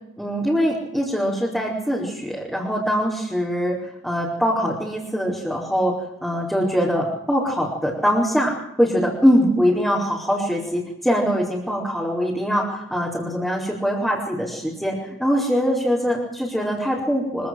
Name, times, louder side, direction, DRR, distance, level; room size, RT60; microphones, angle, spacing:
voice 1, 0.2-3.8 4.0-5.9 6.2-8.5 8.8-17.5, equal, ahead, -6 dB, 4.7 m, -22 dB
25.0 x 16.5 x 7.8 m, 0.87 s
head